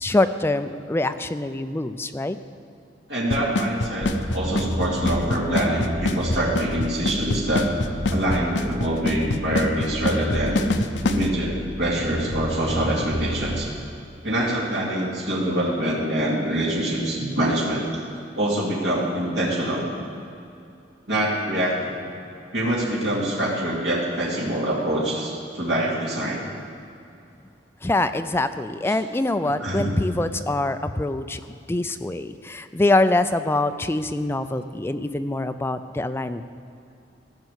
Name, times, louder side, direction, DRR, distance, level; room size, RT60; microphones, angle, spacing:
voice 1, 0.0-2.4 27.8-36.4, left 2 dB, 15° left, 10 dB, 0.4 m, -24 dB
voice 2, 3.1-7.7 8.1-10.6 11.1-13.7 14.2-17.8 18.3-19.8 21.1-22.0 22.5-26.4 29.6-30.0, right 1 dB, 65° right, -6 dB, 2.5 m, -25 dB
Drum kit / Snare drum / Bass drum, 3.3-11.3, left 3 dB, 70° left, 0.6 m, -24 dB
sound 1, 4.0-13.6, equal, 35° right, 1.1 m, -31 dB
15.5 x 5.9 x 8.0 m, 2.6 s
head